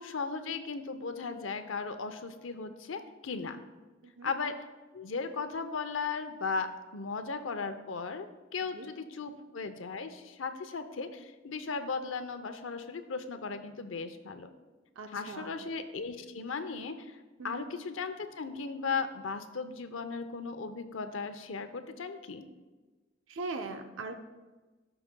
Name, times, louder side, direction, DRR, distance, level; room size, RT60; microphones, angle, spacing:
voice 1, 0.0-3.6 4.2-4.5 4.9-14.5 15.1-22.4, left 4 dB, 85° left, 8 dB, 0.7 m, -37 dB
voice 2, 15.0-15.6 17.4-17.7 23.3-24.2, right 3 dB, 80° right, 6 dB, 0.7 m, -40 dB
17.5 x 6.0 x 2.2 m, 1.3 s
head